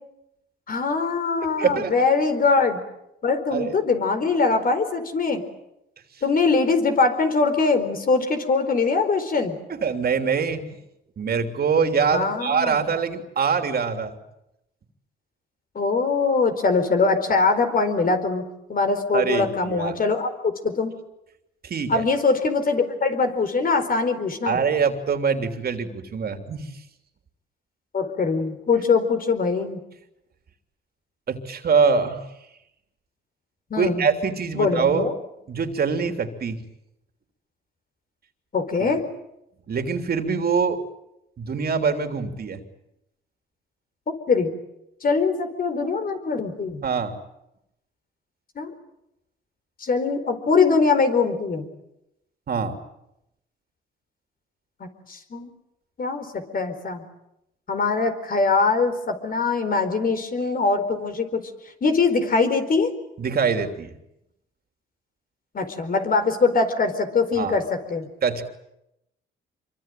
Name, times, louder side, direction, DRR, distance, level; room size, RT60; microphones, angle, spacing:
voice 1, 0.7-2.8 3.2-5.4 6.2-9.6 12.1-12.8 15.7-18.4 18.7-20.9 21.9-24.6 27.9-29.8 33.7-34.1 34.5-35.1 38.5-39.0 44.1-44.5 45.0-46.8 48.5-48.7 49.8-51.7 54.8-55.5 56.0-57.0 57.7-61.4 61.8-62.9 65.5-68.1, left 4 dB, 45° left, 8 dB, 4.6 m, -22 dB
voice 2, 1.6-1.9 3.5-3.7 9.8-10.6 11.2-14.2 19.1-20.0 21.6-22.0 24.4-26.7 31.3-32.2 33.8-35.1 35.5-36.6 39.7-40.8 41.4-42.6 46.8-47.1 52.5-52.8 63.2-63.9 67.4-67.6 68.2-68.4, right 5 dB, 50° right, 7 dB, 3.2 m, -24 dB
26.0 x 24.0 x 9.3 m, 0.85 s
cardioid pair, 90°, 20 cm